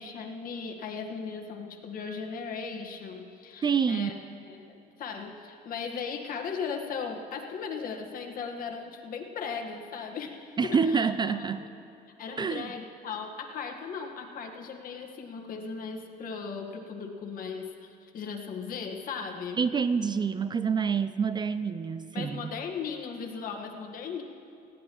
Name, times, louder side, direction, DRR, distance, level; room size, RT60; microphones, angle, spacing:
voice 1, 0.0-4.1 4.5-11.6 12.2-19.6 22.1-24.2, left 5 dB, 55° left, 3 dB, 1.6 m, -37 dB
voice 2, 3.6-4.1 10.6-11.7 12.4-12.7 19.6-22.5, right 6 dB, 25° right, 13 dB, 0.4 m, -27 dB
20.0 x 16.5 x 3.1 m, 2.7 s
cardioid pair, 110°, 17 cm